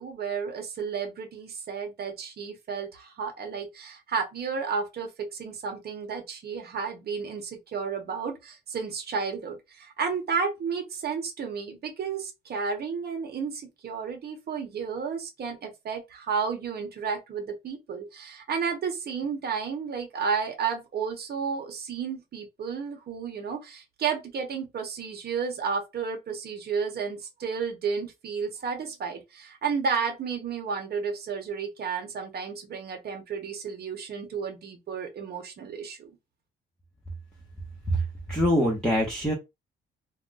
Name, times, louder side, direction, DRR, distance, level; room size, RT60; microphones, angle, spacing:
voice 1, 0.0-36.1, right 6 dB, 55° right, 1.0 m, -32 dB
voice 2, 38.3-39.3, equal, 5° left, 0.8 m, -24 dB
2.3 x 2.2 x 3.9 m
cardioid pair, 90°, 20 cm